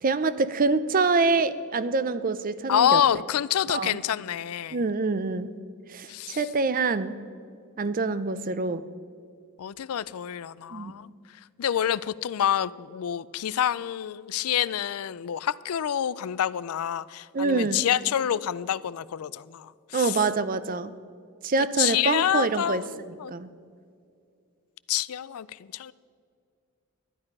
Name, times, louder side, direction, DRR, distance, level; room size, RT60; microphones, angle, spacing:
voice 1, 0.0-3.0 3.7-4.0 4.7-5.5 5.9-7.2 7.8-8.8 10.7-10.9 17.3-17.8 19.9-20.9 21.4-22.8 23.3-23.5, right 4 dB, 40° right, 14 dB, 0.5 m, -25 dB
voice 2, 2.7-4.8 6.1-6.5 9.6-11.1 11.6-20.2 21.8-23.3 24.9-25.9, left 10 dB, 80° left, 19 dB, 0.4 m, -27 dB
12.0 x 10.5 x 5.4 m, 2.3 s
head